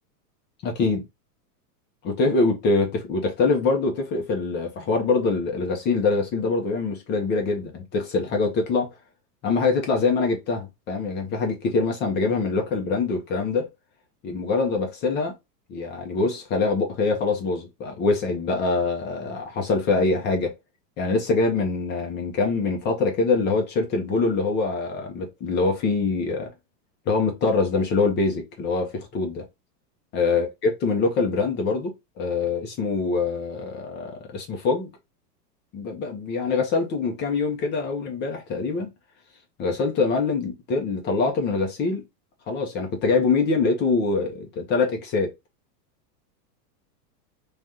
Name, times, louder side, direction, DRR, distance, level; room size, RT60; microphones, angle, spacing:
voice 1, 0.6-1.1 2.0-8.9 9.4-13.7 14.2-15.3 15.7-20.5 21.0-26.5 27.1-29.5 30.1-34.9 35.7-38.9 39.6-42.0 42.5-45.3, left 3 dB, 20° left, 0.5 m, -24 dB
3.2 x 2.3 x 2.5 m
supercardioid pair, 140°, 49 cm